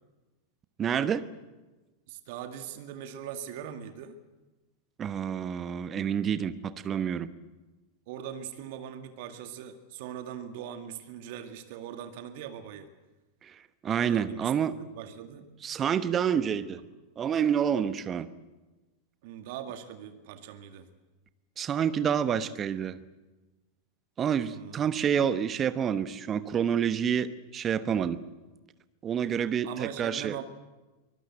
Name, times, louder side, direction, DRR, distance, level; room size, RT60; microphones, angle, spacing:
voice 1, 0.8-1.2 5.0-7.3 13.4-13.5 13.8-14.7 15.6-16.8 17.2-18.3 21.6-23.0 24.2-28.2 29.0-30.4, right 8 dB, 25° right, 14 dB, 1.1 m, -28 dB
voice 2, 2.1-4.2 8.1-12.9 14.0-15.5 16.4-16.6 19.2-20.9 24.5-24.8 29.6-30.4, right 9 dB, 50° right, 8 dB, 2.0 m, -41 dB
24.0 x 20.0 x 7.9 m, 1.2 s
figure-of-eight pair, 90°, 0 cm